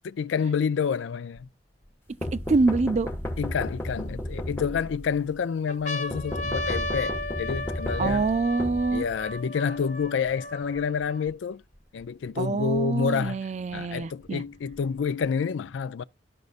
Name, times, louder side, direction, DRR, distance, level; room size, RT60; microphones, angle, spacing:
voice 1, 0.0-1.5 3.4-8.3 8.9-11.6 11.9-13.4 13.7-16.0, left 6 dB, 90° left, 0.4 m, -28 dB
sound 1, 1.4-1.5 2.1-3.4 4.1-4.9 5.3-5.4 5.7-11.3 12.0-12.1 12.3-13.3 14.2-15.3, left 1 dB, 40° left, 1.2 m, -36 dB
sound 2, 2.2-5.2 6.1-9.4, left 1 dB, 15° left, 0.9 m, -33 dB
voice 2, 2.5-3.1 8.0-9.0 12.4-14.4, right 3 dB, 40° right, 0.4 m, -25 dB
12.5 x 5.2 x 2.4 m
head